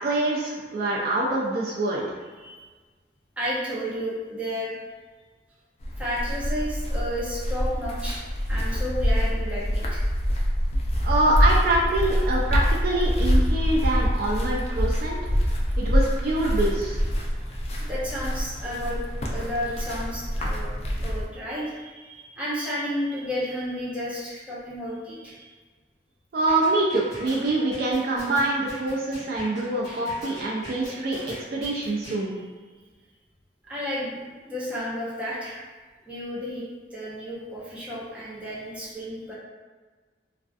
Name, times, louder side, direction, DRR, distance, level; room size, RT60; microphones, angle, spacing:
voice 1, 0.0-2.2 11.0-15.2 15.8-17.0 26.3-32.3, right 2 dB, 55° right, -3 dB, 0.3 m, -25 dB
voice 2, 3.4-4.7 6.0-10.0 17.8-20.7 21.0-25.5 29.9-30.0 33.7-35.6 36.1-36.6 36.9-39.3, equal, 5° right, -8 dB, 0.6 m, -32 dB
sound 1, 5.8-21.3, equal, 35° left, 0.3 m, -25 dB
sound 2, 26.5-32.2, equal, 20° left, 1.1 m, -42 dB
2.4 x 2.2 x 2.3 m, 1.4 s
head